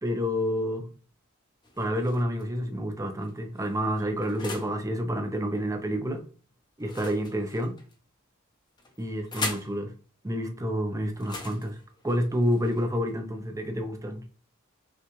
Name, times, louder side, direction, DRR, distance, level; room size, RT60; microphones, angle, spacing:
voice 1, 0.0-0.9 1.8-6.2 6.8-7.8 9.0-9.9 10.2-11.8 12.0-14.2, equal, 15° right, 0.6 m, -29 dB
sound 1, 1.6-2.4 3.2-4.8 6.8-7.9 8.8-9.8 11.1-13.1, left 3 dB, 20° left, 0.7 m, -40 dB
5.7 x 2.4 x 3.0 m
head